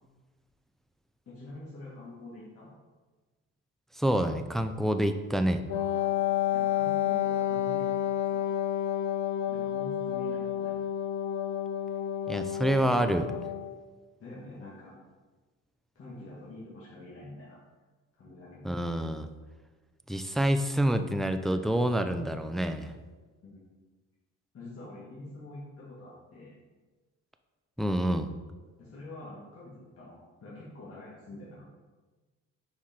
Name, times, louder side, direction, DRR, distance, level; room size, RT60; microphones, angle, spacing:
voice 1, 1.3-2.7 5.7-6.2 6.5-7.9 8.3-8.5 9.5-10.8 14.2-14.9 16.0-17.6 18.1-18.8 23.4-23.6 24.5-26.6 28.8-30.2 30.4-31.6, left 2 dB, 50° left, -7 dB, 1.8 m, -46 dB
voice 2, 3.9-5.6 12.3-13.3 18.6-19.3 20.1-22.9 27.8-28.3, right 1 dB, ahead, 8 dB, 0.4 m, -27 dB
Wind instrument woodwind instrument, 5.7-13.8, left 10 dB, 70° left, 0.6 m, -30 dB
5.7 x 4.8 x 4.3 m, 1.3 s
cardioid pair, 90°, 30 cm